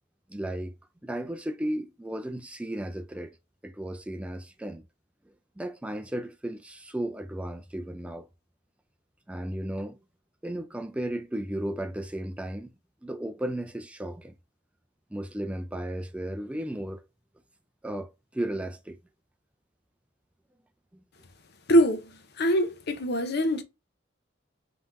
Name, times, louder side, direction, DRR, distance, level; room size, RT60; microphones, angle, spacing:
voice 1, 0.3-0.7 1.0-3.3 3.6-4.8 5.6-8.3 9.3-10.0 10.4-12.7 13.0-14.3 15.1-17.0 17.8-19.0, right 1 dB, 5° right, 0.4 m, -34 dB
voice 2, 21.7-22.1 22.4-23.6, equal, 55° left, 0.7 m, -23 dB
5.5 x 2.9 x 2.5 m
head